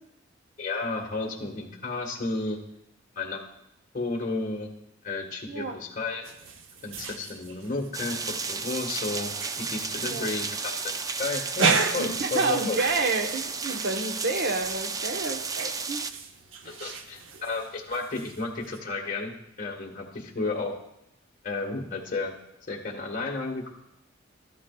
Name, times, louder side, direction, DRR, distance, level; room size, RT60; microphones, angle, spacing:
voice 1, 0.6-2.6 3.1-3.4 3.9-4.7 5.0-6.2 6.8-9.3 9.7-10.7 11.2-12.8 16.6-20.7 21.4-22.3 22.7-23.7, left 3 dB, 45° left, -1 dB, 1.5 m, -32 dB
sound 1, 6.2-18.8, right 4 dB, 75° right, 0.7 m, -35 dB
sound 2, 7.9-16.1, right 4 dB, 20° right, 0.3 m, -33 dB
voice 2, 12.0-16.0 16.8-17.0, right 3 dB, 60° right, 4 dB, 1.1 m, -29 dB
13.0 x 11.0 x 2.4 m, 0.82 s
head